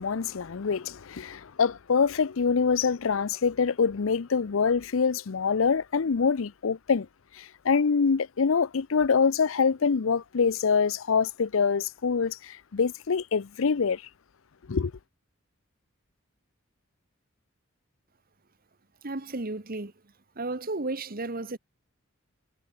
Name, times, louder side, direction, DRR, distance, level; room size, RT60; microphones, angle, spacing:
voice 1, 0.0-7.1 7.4-14.0 14.7-14.9, left 5 dB, 70° left, 0.6 m, -25 dB
voice 2, 19.0-19.9 20.4-21.6, right 2 dB, 45° right, 1.4 m, -33 dB
head